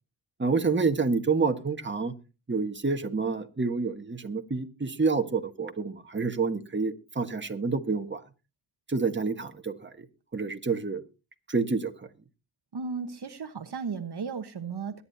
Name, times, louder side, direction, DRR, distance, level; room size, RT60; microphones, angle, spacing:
voice 1, 0.4-2.1 2.5-8.2 8.9-10.0 10.3-11.0 11.5-11.9, right 4 dB, 25° right, 6 dB, 1.6 m, -28 dB
voice 2, 12.7-15.0, right 5 dB, 55° right, 7 dB, 1.3 m, -35 dB
22.5 x 10.0 x 2.8 m, 0.31 s
cardioid pair, 65°, 48 cm